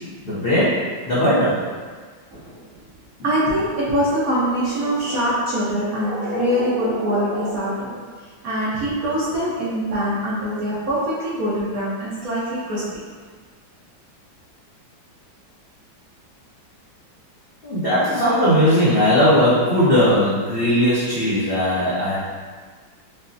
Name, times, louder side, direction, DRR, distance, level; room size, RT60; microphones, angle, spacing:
voice 1, 0.2-1.6 17.6-22.2, equal, 70° left, -11 dB, 0.5 m, -18 dB
voice 2, 2.3-2.8 3.2-7.9 8.4-13.0, equal, 60° right, -8 dB, 1.0 m, -23 dB
5.3 x 2.0 x 2.6 m, 1.6 s
omnidirectional pair, 2.1 m